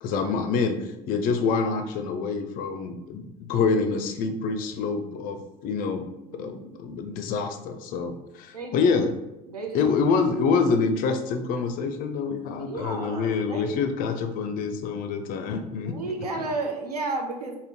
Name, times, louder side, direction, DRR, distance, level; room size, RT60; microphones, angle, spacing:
voice 1, 0.0-6.0 6.4-9.1 9.7-16.2, left 5 dB, 50° left, 7 dB, 0.4 m, -26 dB
voice 2, 6.2-6.7 8.5-9.0 9.5-10.0 12.6-13.7 15.8-17.6, right 3 dB, 85° right, 2 dB, 0.4 m, -33 dB
3.5 x 2.1 x 2.7 m, 0.94 s
figure-of-eight pair, 60°, 19 cm